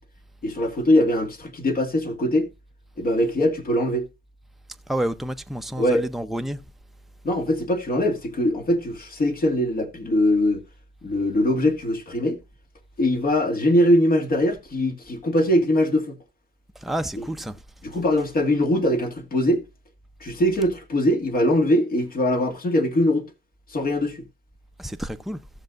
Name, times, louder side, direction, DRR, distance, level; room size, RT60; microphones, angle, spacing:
voice 1, 0.4-2.5 3.0-4.1 5.8-6.0 7.2-10.6 11.0-12.4 13.0-16.2 17.8-19.6 20.2-23.3 23.7-24.2, left 1 dB, 50° left, 2.0 m, -22 dB
voice 2, 4.9-6.6 16.8-17.6 24.8-25.4, right 1 dB, ahead, 0.7 m, -29 dB
15.5 x 6.7 x 2.5 m
cardioid pair, 90°, 20 cm